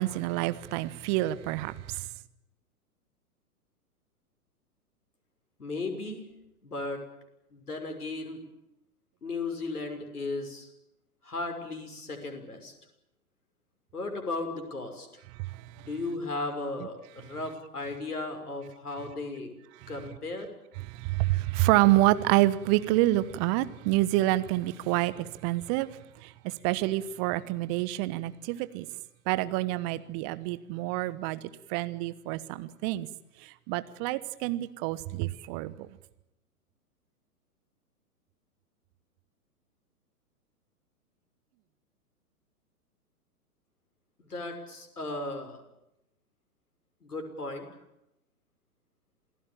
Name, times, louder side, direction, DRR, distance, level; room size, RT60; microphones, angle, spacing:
voice 1, 0.0-2.0 20.9-26.0 26.4-28.8 29.3-31.4 31.7-33.1 33.7-35.7, right 17 dB, 25° right, 1.2 m, -27 dB
voice 2, 5.6-6.3 6.6-7.0 7.5-8.4 9.2-10.7 11.2-12.7 13.9-15.1 15.8-19.5 19.9-20.5 44.2-45.6 47.0-47.7, left 2 dB, 75° left, 6.2 m, -35 dB
27.5 x 18.0 x 9.1 m
figure-of-eight pair, 115°, 46 cm